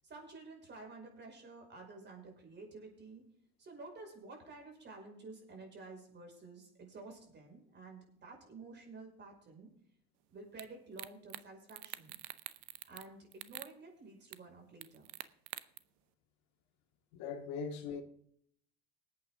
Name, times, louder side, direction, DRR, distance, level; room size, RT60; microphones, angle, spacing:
voice 1, 0.0-3.2 3.6-9.7 10.3-12.2 12.9-15.1, right 3 dB, 35° right, 5.4 m, -51 dB
sound 1, 10.6-10.7 11.0-11.4 11.7-13.1 13.3-13.7 14.3-14.4 14.8-15.8, right 19 dB, 65° right, 0.8 m, -45 dB
voice 2, 17.1-18.0, left 6 dB, 65° left, 2.1 m, -40 dB
20.0 x 8.8 x 3.7 m
supercardioid pair, 95°, 30 cm